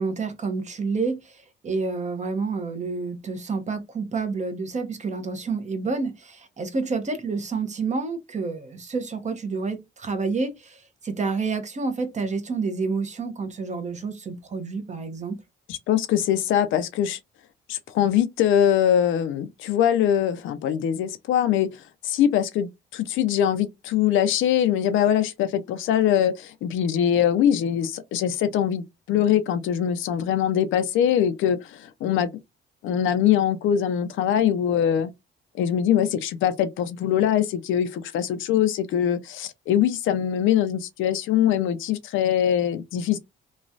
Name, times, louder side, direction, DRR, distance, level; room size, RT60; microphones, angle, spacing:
voice 1, 0.0-15.4, right 4 dB, 35° right, 0.8 m, -29 dB
voice 2, 15.7-17.2 17.7-21.8 22.0-32.3 32.8-35.1 35.6-43.2, left 10 dB, 80° left, 0.5 m, -22 dB
3.1 x 2.3 x 2.6 m
cardioid pair, 90°, 20 cm